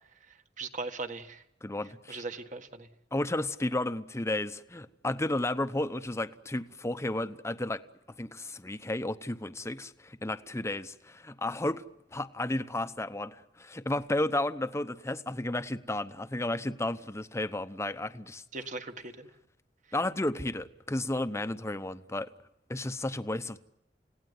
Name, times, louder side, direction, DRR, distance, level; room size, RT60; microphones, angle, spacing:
voice 1, 0.3-1.4 2.1-2.9 18.5-19.3, right 3 dB, 45° right, 1.7 m, -39 dB
voice 2, 1.6-2.2 3.1-7.8 8.2-11.8 12.1-18.4 19.9-22.3 22.7-23.6, left 1 dB, 15° left, 0.9 m, -33 dB
30.0 x 17.5 x 9.6 m
head